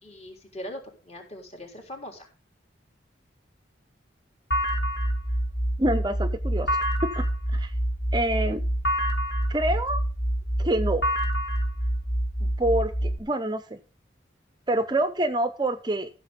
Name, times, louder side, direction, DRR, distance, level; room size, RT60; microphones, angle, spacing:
voice 1, 0.0-2.3, left 1 dB, 35° left, 2 dB, 3.6 m, -41 dB
sound 1, 4.5-13.2, equal, 55° left, 2.3 m, -26 dB
voice 2, 5.8-6.8 7.2-7.3 7.5-7.7 8.1-8.6 9.5-10.0 10.6-11.0 12.4-13.8 14.7-16.1, right 1 dB, 25° right, 11 dB, 0.6 m, -26 dB
14.5 x 6.8 x 5.1 m, 0.34 s
head